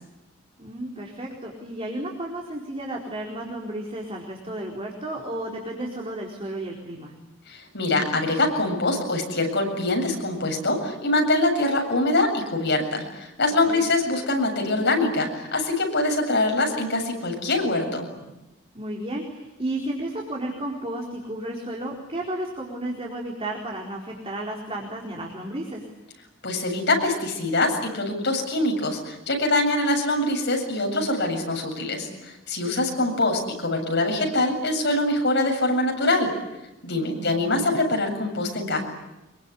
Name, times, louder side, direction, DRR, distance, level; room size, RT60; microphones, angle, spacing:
voice 1, 0.6-7.1 13.7-13.9 18.7-25.8 32.5-32.8 36.9-37.3, right 1 dB, 30° right, -1 dB, 4.3 m, -33 dB
voice 2, 7.5-18.1 26.4-36.3 36.8-38.8, left 2 dB, 60° left, 2 dB, 7.8 m, -24 dB
25.5 x 23.0 x 9.9 m, 0.96 s
head